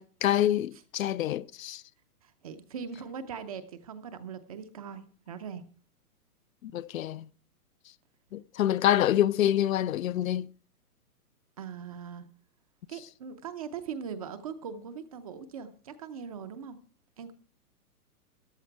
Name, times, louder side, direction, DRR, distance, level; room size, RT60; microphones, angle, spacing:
voice 1, 0.0-1.8 6.6-7.3 8.3-10.5, left 12 dB, 60° left, 0.6 m, -26 dB
voice 2, 2.2-5.6 11.6-12.2 12.9-16.8 17.2-17.3, right 7 dB, 25° right, 0.6 m, -40 dB
14.0 x 11.0 x 4.5 m
hypercardioid pair, 155°, 45 cm